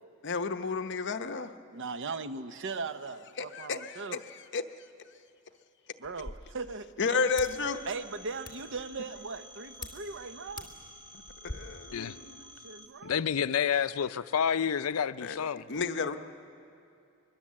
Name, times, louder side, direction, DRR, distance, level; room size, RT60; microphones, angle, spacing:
voice 1, 0.2-1.6 3.4-4.6 7.0-7.8 11.4-12.6 15.2-15.4 15.7-16.2, left 5 dB, 55° left, 0.9 m, -32 dB
voice 2, 1.7-4.2 6.0-7.3 7.9-10.7 12.4-13.3, right 4 dB, 60° right, 0.8 m, -39 dB
sound 1, 6.0-11.5, left 2 dB, 20° left, 2.4 m, -48 dB
Telephone, 7.0-12.9, equal, 20° right, 1.9 m, -51 dB
voice 3, 13.0-15.6, left 7 dB, 75° left, 0.5 m, -29 dB
23.5 x 22.0 x 7.5 m
head